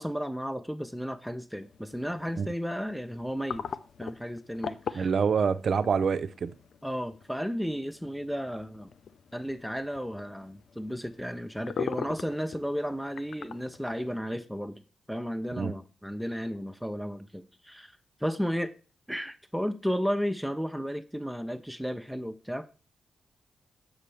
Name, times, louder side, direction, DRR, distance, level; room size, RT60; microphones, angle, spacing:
voice 1, 0.0-3.7 4.0-5.1 6.8-8.9 9.3-14.8 15.1-17.9 18.2-18.7 19.1-22.7, equal, ahead, 0.6 m, -33 dB
sound 1, 1.6-14.2, left 6 dB, 70° left, 0.4 m, -42 dB
voice 2, 4.9-6.5 15.6-15.7, right 6 dB, 65° right, 0.4 m, -26 dB
6.6 x 6.1 x 3.3 m
supercardioid pair, 45°, 0 cm